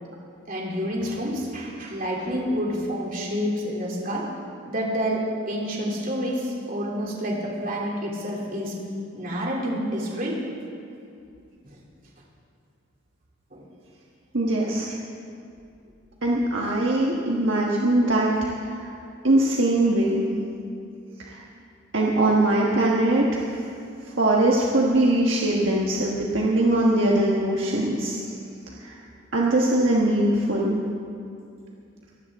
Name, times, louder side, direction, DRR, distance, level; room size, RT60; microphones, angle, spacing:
voice 1, 0.5-4.3 4.7-8.7 9.1-10.4 11.7-11.8 13.5-13.6 14.7-15.0, equal, 45° right, -3 dB, 2.9 m, -28 dB
voice 2, 14.3-14.9 16.2-18.3 18.6-18.9 19.2-20.2 21.2-21.4 21.9-23.5 24.2-28.2 28.8-29.0 29.3-30.8, right 1 dB, 65° right, -3 dB, 1.4 m, -21 dB
23.0 x 15.0 x 3.6 m, 2.5 s
head